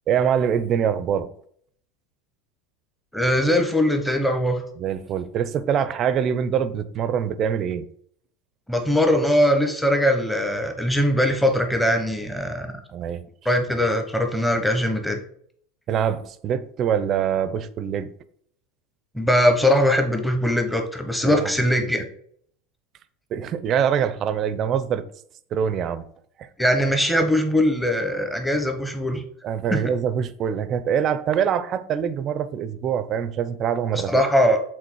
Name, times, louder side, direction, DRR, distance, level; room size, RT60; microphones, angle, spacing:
voice 1, 0.1-1.3 4.8-7.9 12.9-13.2 15.9-18.1 21.2-21.5 21.8-21.9 23.3-25.1 25.5-26.1 26.4-26.5 29.4-34.2, right 8 dB, 35° right, 0.6 m, -24 dB
voice 2, 3.1-4.6 8.7-12.8 13.4-15.2 19.1-22.1 26.6-29.2 29.7-29.8 33.9-34.6, equal, 5° left, 1.1 m, -21 dB
7.7 x 3.7 x 4.6 m
supercardioid pair, 130°, 0 cm